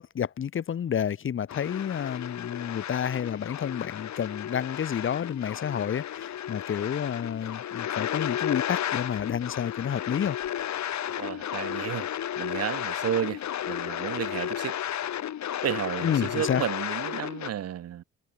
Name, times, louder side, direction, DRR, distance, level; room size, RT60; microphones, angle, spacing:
voice 1, 0.0-10.4 16.0-16.6, left 8 dB, 45° left, 1.0 m, -30 dB
sound 1, 1.5-17.5, left 11 dB, 65° left, 3.5 m, -33 dB
voice 2, 11.2-12.1 12.4-13.4 13.7-14.7 15.6-18.0, right 10 dB, 55° right, 0.9 m, -32 dB
cardioid pair, 90°, 30 cm